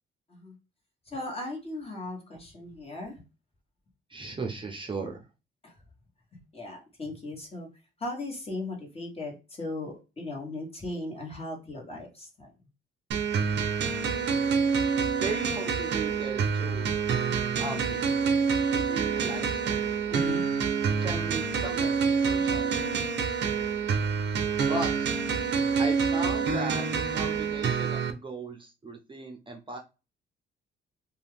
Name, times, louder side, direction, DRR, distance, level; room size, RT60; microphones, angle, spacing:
voice 1, 1.1-3.2 5.6-5.7 6.3-7.7 8.0-12.5 20.1-20.5 22.4-22.5, left 2 dB, 30° left, 0 dB, 1.4 m, -37 dB
voice 2, 4.1-5.2 15.0-16.9 17.6-18.0 18.7-19.8 21.0-23.0 24.7-25.1 25.8-26.8 27.1-29.8, right 3 dB, 25° right, 2 dB, 0.7 m, -37 dB
sound 1, 13.1-28.1, right 6 dB, 65° right, 0.6 m, -27 dB
2.7 x 2.3 x 3.3 m, 0.28 s
cardioid pair, 90°, 20 cm